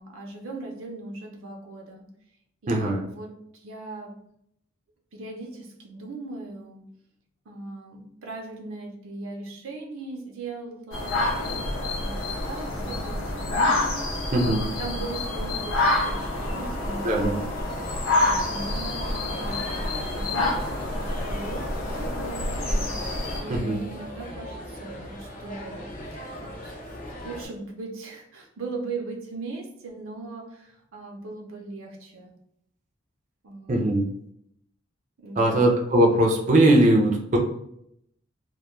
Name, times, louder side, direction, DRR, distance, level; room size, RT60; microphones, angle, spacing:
voice 1, 0.0-2.1 2.6-3.4 3.6-4.1 5.1-6.9 7.5-11.7 12.0-14.1 14.4-17.5 18.2-19.6 20.1-22.9 23.3-25.9 26.4-26.7 27.2-32.3 33.4-33.9 35.2-35.6, right 3 dB, 90° right, 1 dB, 0.6 m, -39 dB
voice 2, 2.7-3.0 14.3-14.6 17.0-17.4 23.5-23.8 33.7-34.0 35.4-37.4, right 1 dB, 35° right, 0 dB, 0.4 m, -20 dB
sound 1, 10.9-23.4, left 2 dB, 85° left, 0.6 m, -27 dB
sound 2, 15.9-27.5, equal, 40° left, 0.6 m, -37 dB
2.2 x 2.1 x 3.0 m, 0.74 s
head